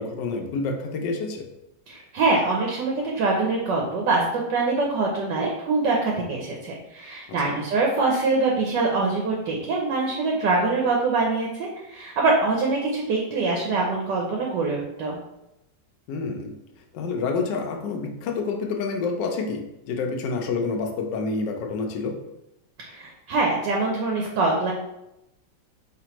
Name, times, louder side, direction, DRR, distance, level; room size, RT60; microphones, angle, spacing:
voice 1, 0.0-1.5 7.4-7.6 16.1-16.5 16.9-22.1, left 4 dB, 70° left, 3 dB, 1.3 m, -28 dB
voice 2, 1.9-15.2 22.8-24.7, right 3 dB, 70° right, -1 dB, 1.3 m, -24 dB
5.0 x 3.4 x 2.9 m, 0.89 s
omnidirectional pair, 2.0 m